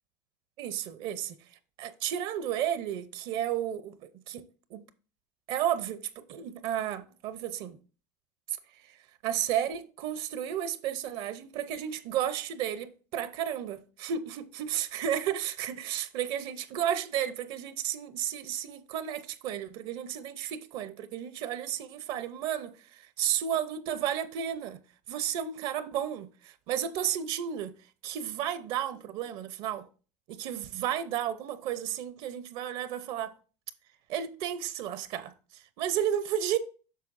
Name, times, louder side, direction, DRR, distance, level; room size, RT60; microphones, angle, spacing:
voice 1, 0.6-1.4 1.8-4.4 4.7-4.8 5.5-7.8 8.7-9.0 9.2-24.8 25.1-27.7 28.0-29.9 30.3-33.3 34.1-36.6, right 10 dB, 65° right, 0.6 m, -33 dB
7.5 x 5.8 x 2.5 m
supercardioid pair, 105°, 10 cm